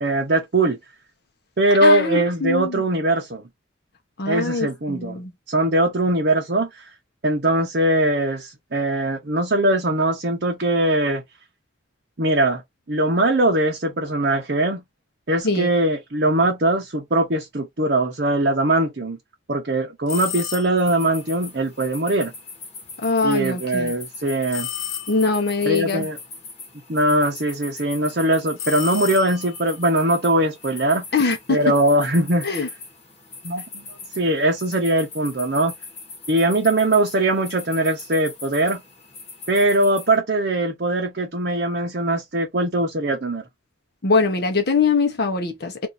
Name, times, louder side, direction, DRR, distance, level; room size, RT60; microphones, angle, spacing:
voice 1, 0.0-0.8 1.6-3.4 4.3-5.2 5.5-6.7 7.2-11.2 12.2-12.6 12.9-14.8 15.3-19.2 19.5-22.3 23.2-24.7 25.6-26.2 26.9-31.0 31.5-32.5 33.4-33.6 34.2-35.7 36.3-38.8 39.5-43.4, right 1 dB, 50° right, 0.8 m, -21 dB
voice 2, 1.8-2.8 4.2-5.3 15.4-15.7 23.0-24.0 25.1-26.1 31.1-31.6 32.4-32.7 44.0-45.9, left 4 dB, 50° left, 0.8 m, -22 dB
sound 1, 20.1-21.0 24.5-25.5 28.6-29.7, left 10 dB, 70° left, 1.1 m, -32 dB
sound 2, 20.8-40.2, left 3 dB, 30° left, 1.1 m, -40 dB
2.6 x 2.5 x 4.1 m
head